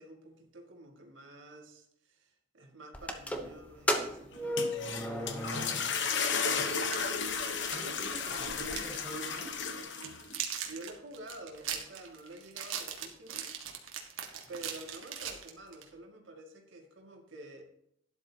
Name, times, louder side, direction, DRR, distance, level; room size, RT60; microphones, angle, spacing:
voice 1, 0.0-6.9 10.7-13.6 14.5-17.6, right 2 dB, 65° right, 1 dB, 2.2 m, -50 dB
sound 1, 2.9-6.1 6.4-6.5 7.3-7.4 7.8-7.9 8.1-8.8, equal, 5° left, 0.9 m, -34 dB
sound 2, 4.3-10.4, left 5 dB, 60° left, 1.1 m, -34 dB
sound 3, 6.7-9.0 9.2-9.4 9.8-15.9, right 8 dB, 85° right, 1.7 m, -40 dB
voice 2, 7.7-9.6, right 1 dB, 10° right, -5 dB, 4.0 m, -47 dB
12.5 x 10.5 x 2.9 m, 0.72 s
head